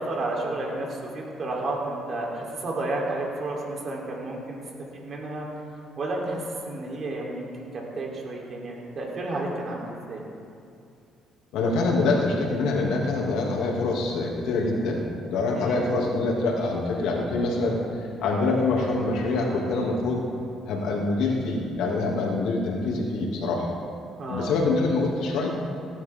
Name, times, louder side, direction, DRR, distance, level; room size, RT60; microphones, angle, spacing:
voice 1, 0.0-4.6 4.9-5.5 6.0-10.2 15.5-16.0 24.2-24.6, right 2 dB, 50° right, -3 dB, 3.6 m, -31 dB
voice 2, 11.5-20.2 20.7-23.7 24.3-25.5, left 3 dB, 80° left, -2 dB, 2.6 m, -25 dB
17.5 x 10.5 x 3.7 m, 2.6 s
cardioid pair, 90°, 0 cm